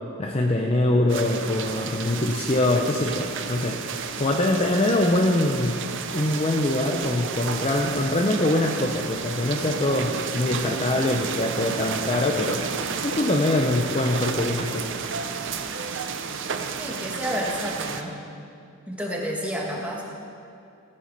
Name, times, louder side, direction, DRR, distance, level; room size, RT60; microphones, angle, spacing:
voice 1, 0.2-3.8 4.2-5.8 6.1-12.6 13.0-14.9, left 1 dB, 30° left, 1 dB, 0.6 m, -23 dB
sound 1, 1.1-18.0, right 6 dB, 60° right, 0.7 m, -32 dB
voice 2, 16.8-18.2 18.9-20.0, equal, 5° right, -2 dB, 1.6 m, -30 dB
15.5 x 7.7 x 5.4 m, 2.5 s
head